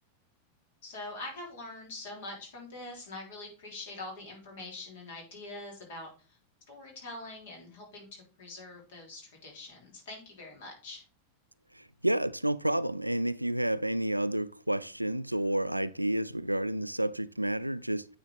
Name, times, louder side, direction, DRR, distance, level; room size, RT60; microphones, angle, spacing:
voice 1, 0.8-6.4 6.7-11.0, left 2 dB, 55° left, 3.5 m, -44 dB
voice 2, 11.7-18.1, right 1 dB, 90° right, 0.3 m, -30 dB
9.2 x 4.3 x 3.7 m
figure-of-eight pair, 90°, 0 cm